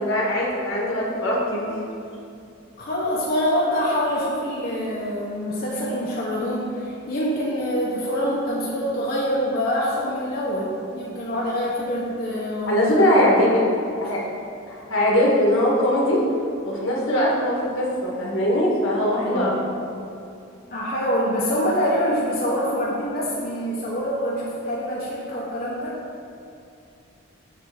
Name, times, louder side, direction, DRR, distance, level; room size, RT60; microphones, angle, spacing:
voice 1, 0.0-1.9 12.7-13.6 14.0-14.2 14.7-16.2 16.6-19.6, left 1 dB, 75° left, -4 dB, 1.7 m, -21 dB
voice 2, 1.6-1.9 2.8-12.8 19.2-19.5 20.7-26.0, equal, 45° left, -6 dB, 0.9 m, -25 dB
7.6 x 3.3 x 6.2 m, 2.5 s
head